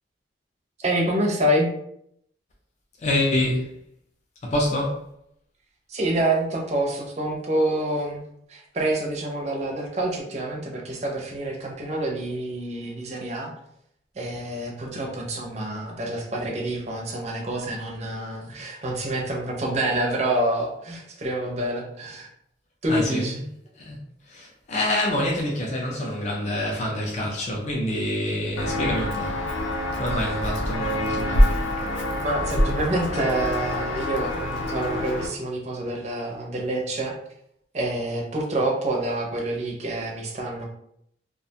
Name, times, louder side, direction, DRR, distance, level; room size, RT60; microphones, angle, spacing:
voice 1, 0.8-1.7 5.9-8.2 8.5-13.5 14.2-22.3 22.8-23.3 32.2-37.1 37.7-40.7, right 1 dB, 35° right, 0 dB, 0.5 m, -27 dB
voice 2, 3.0-3.7 4.5-5.0 22.9-23.4 23.8-24.0 24.3-29.4 30.0-31.5, left 1 dB, 40° left, -2 dB, 0.4 m, -26 dB
Walk footsteps, 28.6-35.3, left 1 dB, 90° left, 0.5 m, -25 dB
2.4 x 2.2 x 2.7 m, 0.74 s
head